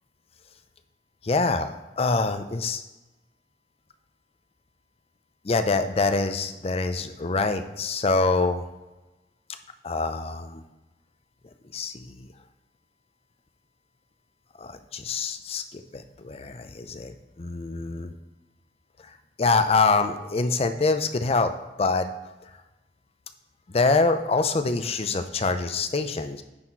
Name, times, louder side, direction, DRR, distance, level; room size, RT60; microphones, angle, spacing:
voice 1, 1.2-2.8 5.4-8.6 9.8-10.6 11.7-12.3 14.6-18.1 19.0-21.5 21.8-22.1 23.7-26.4, left 3 dB, 35° left, 9 dB, 0.5 m, -25 dB
9.8 x 4.2 x 4.5 m, 1.1 s
head